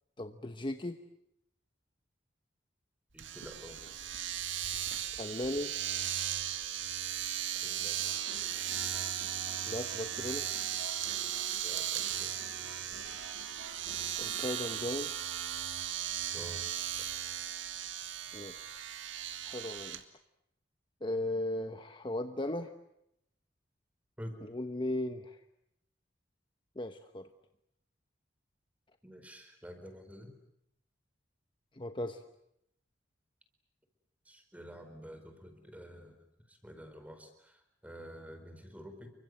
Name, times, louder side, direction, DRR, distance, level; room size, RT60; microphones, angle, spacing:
voice 1, 0.2-1.0 5.2-5.7 9.7-10.5 14.2-15.1 18.3-18.7 19.4-20.0 21.0-22.7 24.4-25.4 26.8-27.3 31.7-32.2, left 1 dB, 25° left, 8 dB, 1.0 m, -36 dB
voice 2, 3.1-3.8 7.6-8.0 11.6-12.4 16.3-16.6 24.2-24.4 29.0-30.3 34.3-36.1 36.5-39.1, equal, 10° right, 7 dB, 4.6 m, -49 dB
Domestic sounds home sounds, 3.2-20.0, right 10 dB, 90° right, 1.9 m, -37 dB
sound 1, 8.0-14.5, right 2 dB, 70° right, 3.6 m, -50 dB
29.5 x 24.5 x 7.9 m, 0.78 s
head